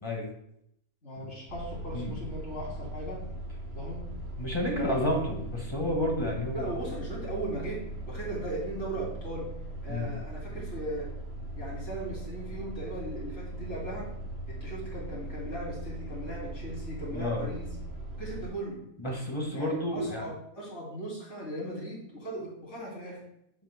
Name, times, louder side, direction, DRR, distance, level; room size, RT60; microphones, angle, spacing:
voice 1, 1.0-3.2 3.7-4.0 4.7-5.3 6.5-9.5 9.8-11.1 11.6-14.1 14.5-17.7 18.2-18.8 19.5-23.2, right 1 dB, 55° left, -5 dB, 3.5 m, -38 dB
sound 1, 1.5-18.5, right 1 dB, 50° right, 1.3 m, -39 dB
voice 2, 4.4-6.7 9.9-10.1 17.1-17.4 19.0-20.2, left 1 dB, 20° left, 0 dB, 1.8 m, -30 dB
9.0 x 7.9 x 2.2 m, 0.74 s
omnidirectional pair, 1.5 m